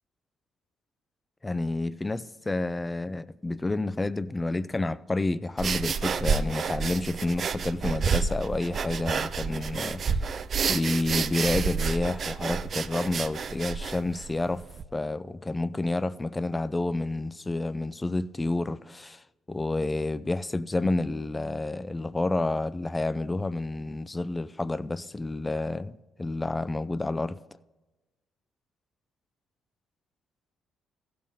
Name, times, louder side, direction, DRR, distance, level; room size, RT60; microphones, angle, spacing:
voice 1, 1.4-10.3 10.7-14.6 14.9-27.4, left 2 dB, 20° left, 0.4 m, -29 dB
sound 1, 5.6-14.8, right 5 dB, 50° right, 0.5 m, -29 dB
15.5 x 6.7 x 3.9 m
hypercardioid pair, 55°, 0 cm